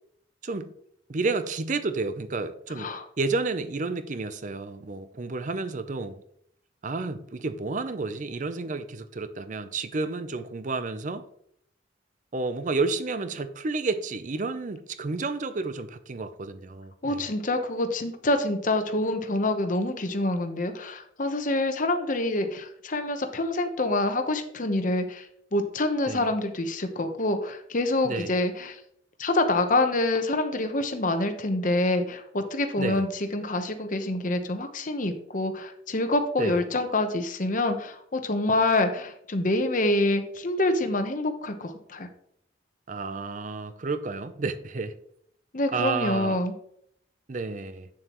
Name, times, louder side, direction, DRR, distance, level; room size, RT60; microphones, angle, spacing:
voice 1, 0.4-0.7 1.1-2.9 3.2-6.2 6.8-11.2 12.3-17.2 26.1-26.3 28.0-28.3 32.8-33.1 36.4-36.6 42.9-44.9 45.7-46.4 47.3-47.9, right 3 dB, 40° right, 0.5 m, -31 dB
voice 2, 17.0-28.8 29.2-42.1 45.5-46.5, left 2 dB, 45° left, 0.9 m, -26 dB
8.7 x 7.0 x 3.0 m
head